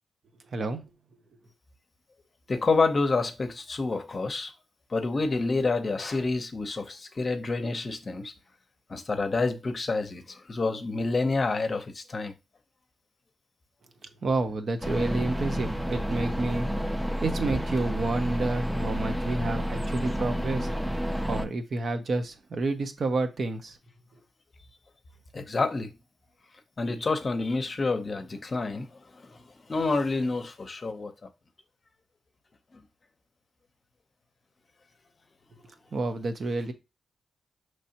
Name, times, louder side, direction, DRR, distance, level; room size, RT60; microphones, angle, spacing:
voice 1, 0.5-0.8 14.2-16.7 17.2-20.7 21.3-23.8 35.9-36.7, right 2 dB, 55° right, 0.7 m, -29 dB
voice 2, 2.5-4.5 4.9-8.3 8.9-12.3 25.3-25.9 26.8-28.9 29.1-29.4 29.7-31.1 32.7-32.8, left 3 dB, 40° left, 0.7 m, -28 dB
sound 1, 14.8-21.5, equal, 5° right, 0.5 m, -30 dB
5.4 x 3.2 x 2.8 m
cardioid pair, 85°, 0 cm